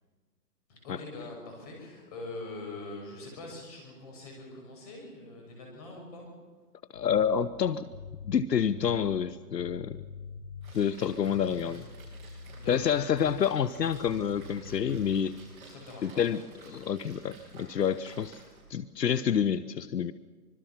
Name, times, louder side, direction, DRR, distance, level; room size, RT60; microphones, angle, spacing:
voice 1, 0.7-6.3 10.6-10.8 12.5-12.9 15.6-16.4, left 2 dB, 25° left, 0 dB, 6.0 m, -43 dB
voice 2, 6.9-7.8 8.2-10.0 10.7-11.8 12.7-15.3 16.0-18.4 18.7-20.1, left 8 dB, 80° left, 14 dB, 1.0 m, -28 dB
sound 1, 6.9-10.9 11.2-13.5 13.8-15.2, left 4 dB, 40° left, 4.8 m, -45 dB
Splash splatter, 10.6-18.8, right 3 dB, 30° right, 7.7 m, -53 dB
25.5 x 22.0 x 5.9 m, 1.4 s
hypercardioid pair, 175°, 49 cm